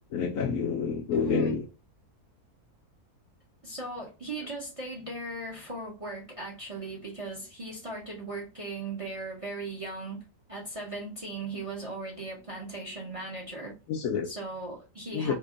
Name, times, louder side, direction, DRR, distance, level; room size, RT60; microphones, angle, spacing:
voice 1, 0.1-1.6 13.9-14.3 15.1-15.3, left 6 dB, 70° left, 0.9 m, -28 dB
voice 2, 1.1-1.6 3.6-10.2 10.5-13.7 14.2-15.3, right 3 dB, 30° right, 0.7 m, -38 dB
2.9 x 2.6 x 3.7 m
omnidirectional pair, 1.7 m